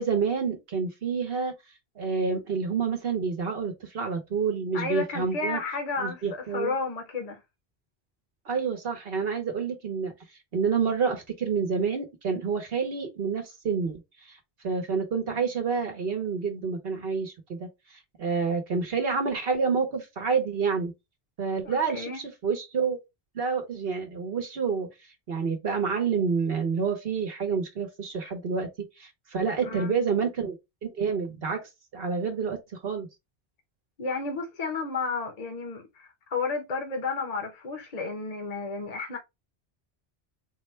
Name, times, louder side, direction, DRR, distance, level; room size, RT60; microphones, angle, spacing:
voice 1, 0.0-1.5 2.0-5.6 6.0-6.7 8.4-14.4 14.6-20.9 21.4-23.0 23.3-30.6 30.8-33.1, right 5 dB, 65° right, 1.1 m, -28 dB
voice 2, 4.7-7.4 21.6-22.2 29.6-30.0 34.0-39.2, left 4 dB, 40° left, 0.9 m, -32 dB
4.0 x 2.2 x 4.2 m
omnidirectional pair, 1.1 m